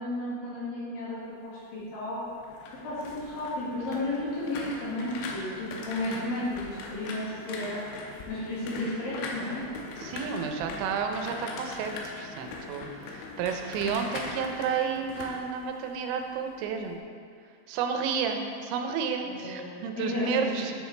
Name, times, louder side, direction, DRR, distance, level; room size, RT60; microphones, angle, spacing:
voice 1, 0.0-2.2 2.8-9.7 19.2-20.6, left 1 dB, 60° left, -8 dB, 3.4 m, -33 dB
sound 1, 2.3-16.3 16.6-17.0, left 3 dB, 90° left, 3.2 m, -41 dB
voice 2, 10.0-17.0 17.7-20.7, right 6 dB, 85° right, 4 dB, 3.0 m, -31 dB
9.8 x 7.8 x 3.3 m, 2.2 s
omnidirectional pair, 5.2 m